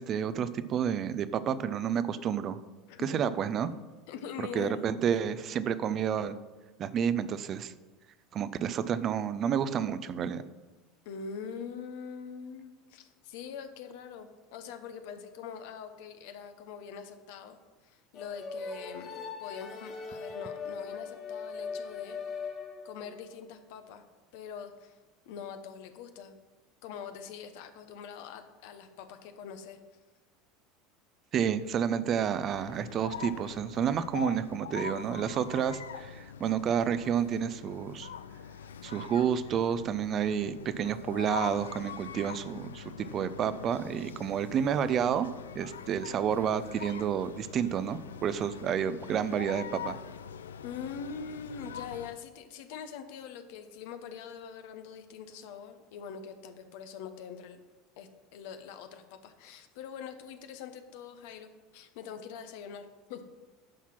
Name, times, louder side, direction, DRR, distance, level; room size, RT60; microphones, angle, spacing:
voice 1, 0.0-2.6 3.0-3.7 4.5-6.3 6.8-7.7 8.3-10.4 31.3-38.1 38.8-45.3 45.5-50.0, right 8 dB, 40° right, 14 dB, 0.6 m, -30 dB
voice 2, 2.9-3.3 4.1-4.8 11.0-22.2 22.8-24.0 24.3-25.0 25.3-26.3 26.8-29.8 50.6-57.6 58.0-63.2, left 7 dB, 65° left, 8 dB, 1.0 m, -43 dB
sound 1, 18.2-23.2, left 5 dB, 40° left, 1.6 m, -40 dB
sound 2, 32.5-52.2, left 8 dB, 80° left, 0.4 m, -43 dB
10.0 x 5.8 x 6.0 m, 1.2 s
hypercardioid pair, 75°, 0 cm